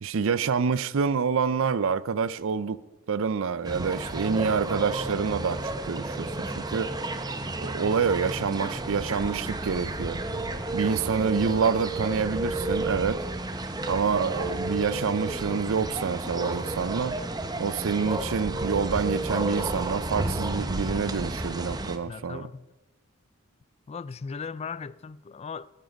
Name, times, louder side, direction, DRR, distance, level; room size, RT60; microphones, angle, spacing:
voice 1, 0.0-2.8 3.1-6.9 7.6-10.2 10.7-13.2 13.9-17.2 17.6-22.5, right 5 dB, 60° right, 0.5 m, -27 dB
sound 1, 3.6-22.0, right 2 dB, 15° right, 0.7 m, -32 dB
voice 2, 22.1-22.7 23.9-25.7, left 5 dB, 30° left, 0.3 m, -37 dB
19.5 x 7.5 x 5.2 m
head